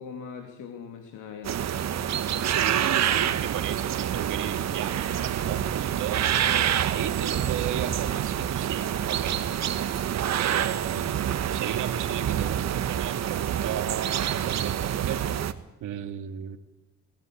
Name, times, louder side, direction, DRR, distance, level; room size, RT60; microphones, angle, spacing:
voice 1, 0.0-1.8 2.3-2.5 10.9-11.1, left 6 dB, 85° left, 4 dB, 2.9 m, -41 dB
sound 1, 1.4-15.5, right 10 dB, 60° right, 1.4 m, -27 dB
voice 2, 2.4-6.3 6.8-9.4 10.4-15.2 15.8-16.6, right 10 dB, 80° right, 7 dB, 2.3 m, -35 dB
19.5 x 16.5 x 8.8 m, 0.97 s
cardioid pair, 90°, 30 cm